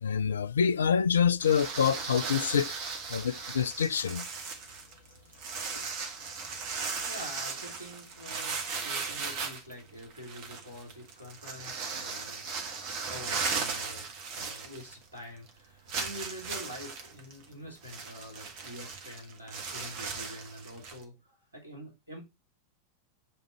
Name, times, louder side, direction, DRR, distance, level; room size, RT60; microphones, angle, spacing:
voice 1, 0.0-2.7 3.1-4.2 5.7-5.8, left 7 dB, 70° left, 0.4 m, -26 dB
sound 1, 1.4-15.2 15.5-15.6 15.9-21.0, right 5 dB, 45° right, 1.5 m, -37 dB
voice 2, 6.7-12.5 13.1-22.2, equal, 80° right, 3.1 m, -46 dB
7.6 x 3.8 x 4.3 m
figure-of-eight pair, 90°, 0 cm